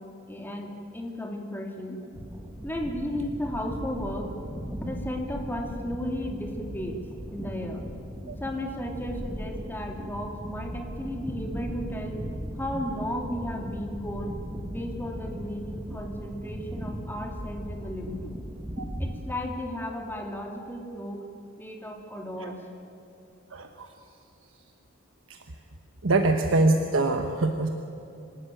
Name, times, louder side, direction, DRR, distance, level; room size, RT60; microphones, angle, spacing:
voice 1, 0.3-2.0 2.6-4.3 4.8-7.0 7.3-7.9 8.4-12.2 12.5-14.4 14.7-18.4 19.0-21.3 21.6-22.6, left 1 dB, 10° left, 2 dB, 2.6 m, -34 dB
sound 1, 2.1-19.2, equal, 15° right, 1.6 m, -37 dB
voice 2, 23.5-23.9 26.0-27.7, right 2 dB, 70° right, 5 dB, 1.2 m, -23 dB
26.0 x 13.0 x 9.1 m, 2.7 s
head